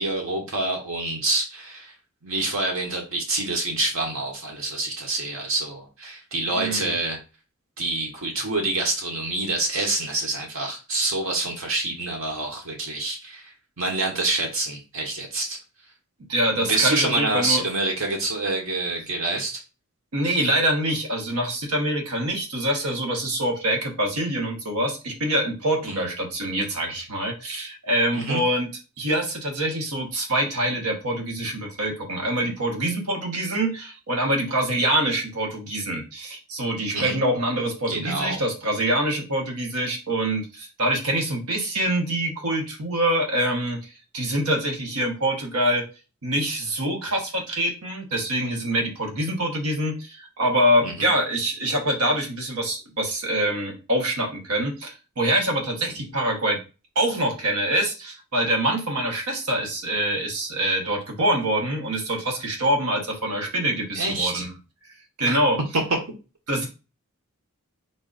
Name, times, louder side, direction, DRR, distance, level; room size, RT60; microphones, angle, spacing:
voice 1, 0.0-1.9 2.2-7.2 7.8-13.5 13.8-15.6 16.6-19.6 25.8-26.1 28.1-28.4 36.9-37.2 37.9-38.4 50.8-51.1 64.0-64.4 65.2-65.4, right 2 dB, 65° right, 1 dB, 1.1 m, -27 dB
voice 2, 6.5-6.9 16.3-17.6 20.1-28.7 29.0-45.8 46.2-56.6 56.9-64.5 65.2-65.6 66.5-66.7, right 1 dB, 90° right, 1 dB, 1.2 m, -25 dB
3.8 x 2.5 x 3.9 m, 0.31 s
head